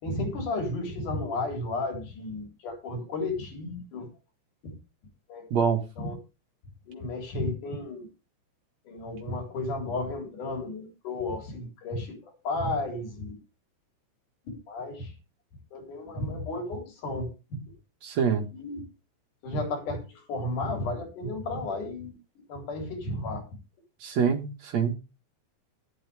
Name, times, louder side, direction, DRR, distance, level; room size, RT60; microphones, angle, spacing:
voice 1, 0.0-4.1 4.6-4.8 5.3-5.5 6.0-6.2 6.9-8.1 8.9-13.3 14.7-15.1 15.7-17.6 18.5-18.8 19.4-22.1 22.5-23.5, left 2 dB, 75° left, 5.3 m, -33 dB
voice 2, 5.5-5.8 18.0-18.5 24.0-24.9, right 6 dB, 60° right, 2.8 m, -25 dB
12.0 x 12.0 x 3.5 m
omnidirectional pair, 3.6 m